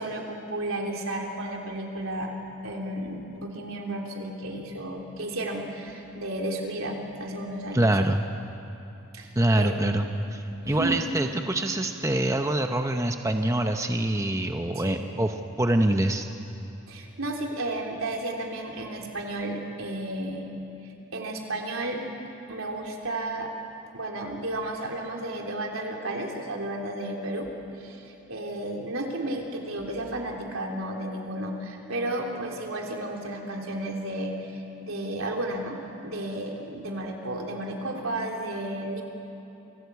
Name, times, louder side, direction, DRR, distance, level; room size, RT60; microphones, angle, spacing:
voice 1, 0.0-2.3 2.6-8.0 9.1-10.0 10.6-11.0 14.7-15.0 16.9-20.5 21.1-22.0 22.5-23.5 23.9-27.5 27.8-35.8 36.0-39.0, right 1 dB, 80° right, 0 dB, 3.4 m, -33 dB
voice 2, 7.7-8.3 9.4-16.3, right 1 dB, 15° right, 5 dB, 0.7 m, -25 dB
27.5 x 17.5 x 8.3 m, 2.9 s
head